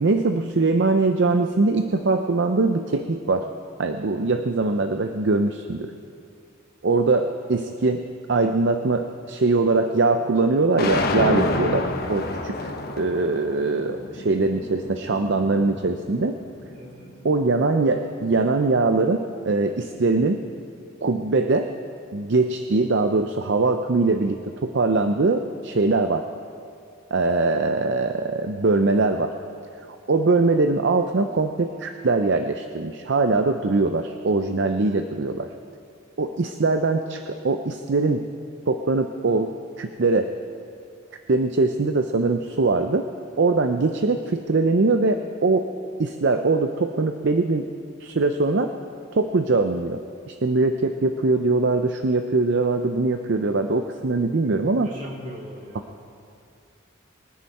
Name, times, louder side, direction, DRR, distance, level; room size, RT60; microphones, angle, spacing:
voice 1, 0.0-3.5 3.8-5.9 6.8-12.6 13.0-16.4 17.2-20.4 21.0-21.7 22.1-26.2 27.1-29.3 30.1-35.5 36.2-38.2 38.7-39.5 39.8-40.3 41.3-43.1 43.4-45.7 46.0-47.6 48.0-48.7 49.1-50.0 50.3-54.9, right 3 dB, 60° right, 6 dB, 0.6 m, -22 dB
sound 1, 10.8-16.9, left 2 dB, 50° left, 1.1 m, -29 dB
voice 2, 16.7-17.1 54.6-56.0, equal, 40° right, -3 dB, 3.5 m, -40 dB
23.5 x 9.9 x 4.2 m, 2.4 s
head